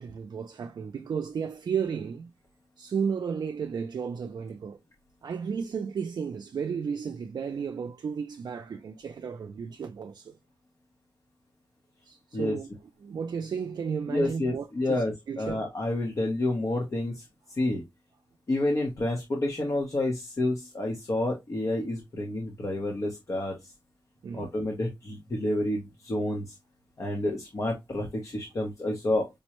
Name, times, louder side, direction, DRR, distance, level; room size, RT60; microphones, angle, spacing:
voice 1, 0.0-2.3 2.8-4.8 5.2-10.4 12.1-12.7 13.0-15.6 24.2-24.5, right 6 dB, 70° right, 0.4 m, -33 dB
voice 2, 14.1-17.2 17.6-17.8 18.5-23.6 24.3-26.5 27.0-29.3, left 1 dB, 45° left, 0.8 m, -29 dB
5.2 x 2.1 x 2.9 m
wide cardioid pair, 120°, 7 cm